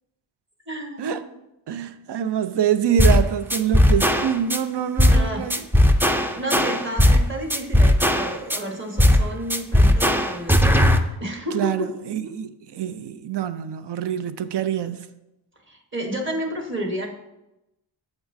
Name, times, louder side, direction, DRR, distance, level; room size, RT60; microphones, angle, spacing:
voice 1, 0.7-1.2 5.1-5.5 6.3-10.8 11.2-11.9 15.7-17.1, right 1 dB, 25° right, 1.3 m, -31 dB
voice 2, 1.7-5.6 11.5-15.0, right 9 dB, 60° right, 0.6 m, -25 dB
sound 1, 3.0-3.2 3.5-4.6 5.0-5.2 5.5-7.2 7.5-8.6 9.0-9.2 9.5-11.0, left 1 dB, 5° right, 0.3 m, -17 dB
8.9 x 7.1 x 2.6 m
wide cardioid pair, 125°, 46 cm